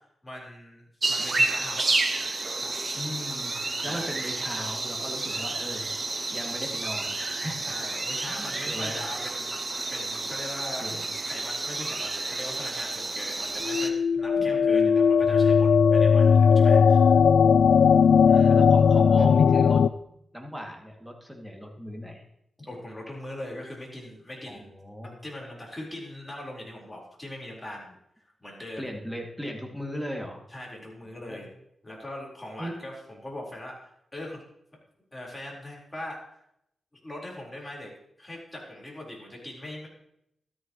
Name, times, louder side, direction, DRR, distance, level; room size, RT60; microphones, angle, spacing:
voice 1, 0.2-2.1 2.6-2.9 3.8-4.2 5.3-5.6 7.6-9.5 9.9-17.1 18.3-18.6 22.6-24.7 25.0-28.0 28.4-28.9 30.5-31.5 31.8-33.7 34.1-34.4 35.1-36.2 37.0-37.9 38.2-39.9, left 1 dB, 10° left, -3 dB, 4.2 m, -41 dB
sound 1, 1.0-13.9, right 2 dB, 35° right, 1.2 m, -30 dB
voice 2, 2.9-5.9 6.3-7.8 8.3-9.1 10.8-11.0 14.4-15.0 18.3-19.8 20.3-22.2 24.5-25.2 28.8-30.4 31.3-31.4 32.6-32.7, equal, 5° right, 0 dB, 2.4 m, -37 dB
sound 2, 13.6-19.9, left 6 dB, 75° left, 0.3 m, -18 dB
13.5 x 13.0 x 3.1 m, 0.78 s
wide cardioid pair, 105°, 0 cm